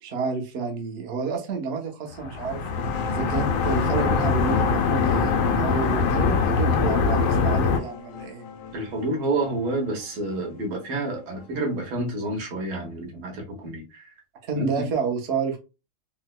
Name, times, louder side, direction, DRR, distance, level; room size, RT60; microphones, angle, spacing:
voice 1, 0.0-2.7 3.1-8.5 14.5-15.6, right 5 dB, 65° right, 0.6 m, -29 dB
sound 1, 2.1-7.8, left 5 dB, 90° left, 1.5 m, -23 dB
sound 2, 2.5-11.8, left 5 dB, 75° left, 0.9 m, -35 dB
voice 2, 8.7-14.1 14.6-14.8, right 2 dB, 80° right, 1.9 m, -29 dB
4.5 x 2.1 x 2.2 m
omnidirectional pair, 2.2 m